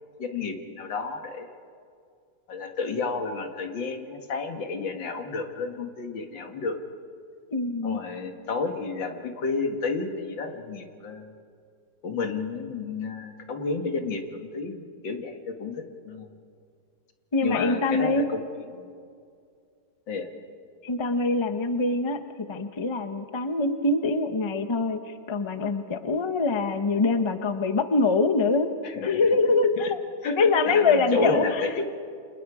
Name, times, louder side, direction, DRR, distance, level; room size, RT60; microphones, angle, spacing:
voice 1, 0.2-1.5 2.5-6.8 7.8-11.3 12.0-16.3 17.4-18.9 20.1-20.3 28.8-29.3 29.8-29.9 30.2-31.8, left 4 dB, 80° left, 5 dB, 2.5 m, -31 dB
voice 2, 7.5-8.0 17.3-18.2 20.8-22.2 22.5-25.0 25.3-28.7 29.0-30.0 30.4-31.6, left 3 dB, 25° left, 8 dB, 0.7 m, -24 dB
29.5 x 27.0 x 4.9 m, 2.3 s
omnidirectional pair, 2.0 m